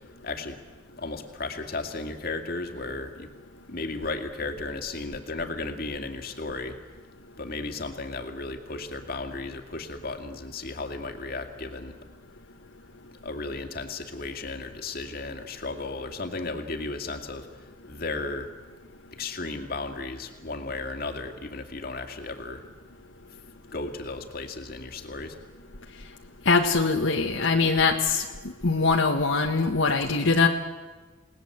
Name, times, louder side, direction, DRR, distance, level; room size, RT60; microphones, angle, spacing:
voice 1, 0.2-0.6 1.0-3.3 3.7-6.8 7.4-12.0 13.2-18.5 19.2-22.7 23.7-25.4, left 3 dB, 45° left, 5 dB, 2.3 m, -34 dB
voice 2, 26.4-28.2 28.6-30.5, left 4 dB, 70° left, 2 dB, 1.5 m, -22 dB
29.0 x 19.0 x 8.0 m, 1.3 s
head